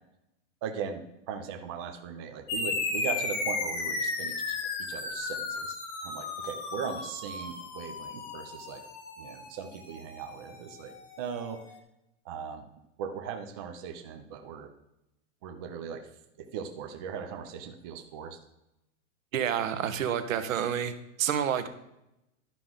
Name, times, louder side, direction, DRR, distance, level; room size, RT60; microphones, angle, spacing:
voice 1, 0.6-5.8 6.0-8.8 9.2-11.6 12.2-12.7 13.0-14.7 15.4-16.1 16.4-18.4, right 7 dB, 20° right, 5 dB, 0.4 m, -39 dB
sound 1, 2.5-11.4, left 3 dB, 40° left, 1.7 m, -35 dB
voice 2, 19.3-20.9 21.2-21.7, right 9 dB, 75° right, 10 dB, 1.2 m, -28 dB
11.5 x 5.9 x 3.8 m, 0.87 s
supercardioid pair, 160°, 40 cm